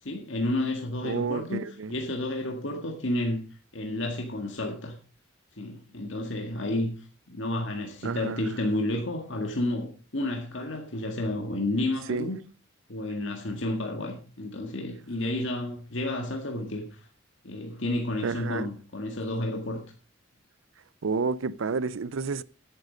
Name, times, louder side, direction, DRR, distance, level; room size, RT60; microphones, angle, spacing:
voice 1, 0.0-1.6 1.9-3.4 3.7-5.0 5.6-7.0 7.3-12.4 12.9-17.1 17.4-19.8, left 1 dB, 65° left, 1.9 m, -31 dB
voice 2, 1.0-1.9 8.0-8.4 12.1-12.3 18.2-18.7 21.0-22.4, right 5 dB, 75° right, 0.5 m, -30 dB
10.5 x 10.0 x 5.1 m
head